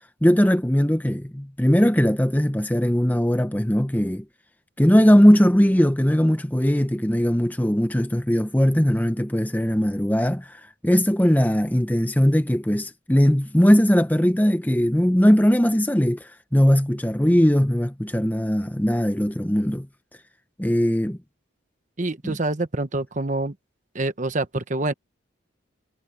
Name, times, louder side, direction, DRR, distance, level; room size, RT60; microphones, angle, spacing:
voice 1, 0.2-4.2 4.8-19.9 20.6-21.2 22.2-22.4, equal, 10° left, 0.8 m, -19 dB
voice 2, 22.0-23.6 23.9-24.9, right 2 dB, 35° right, 1.1 m, -26 dB
head